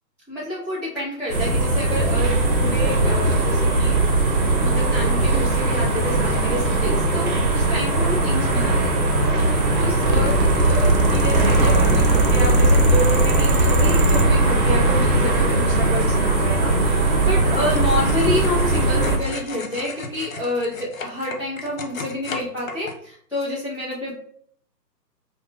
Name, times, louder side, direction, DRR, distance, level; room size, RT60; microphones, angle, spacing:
voice 1, 0.3-9.1 9.8-24.1, equal, 5° left, -12 dB, 1.1 m, -29 dB
sound 1, 1.3-19.2, right 2 dB, 60° right, 1.2 m, -19 dB
sound 2, 9.9-14.2, right 2 dB, 80° right, 0.8 m, -22 dB
sound 3, 17.5-22.9, left 4 dB, 55° left, 0.6 m, -36 dB
4.3 x 2.1 x 2.5 m, 0.62 s
hypercardioid pair, 160°, 50 cm